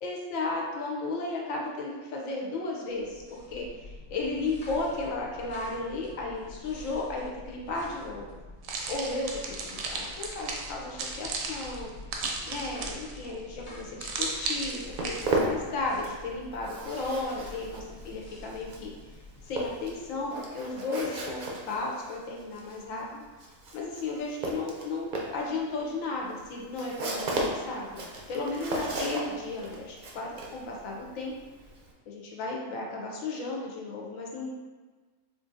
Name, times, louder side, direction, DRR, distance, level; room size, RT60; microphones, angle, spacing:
voice 1, 0.0-8.3 8.9-11.9 12.5-18.9 19.4-23.2 23.7-28.0 28.3-31.3 32.1-34.5, left 3 dB, 85° left, -2 dB, 1.0 m, -34 dB
sound 1, 2.9-20.8, left 2 dB, 40° left, 0.9 m, -47 dB
sound 2, 8.6-13.3 14.0-15.3, right 3 dB, 80° right, 1.0 m, -34 dB
Walk footsteps, 14.5-16.3 16.5-31.9, right 2 dB, 60° right, 0.5 m, -35 dB
4.2 x 2.5 x 2.6 m, 1.3 s
omnidirectional pair, 1.4 m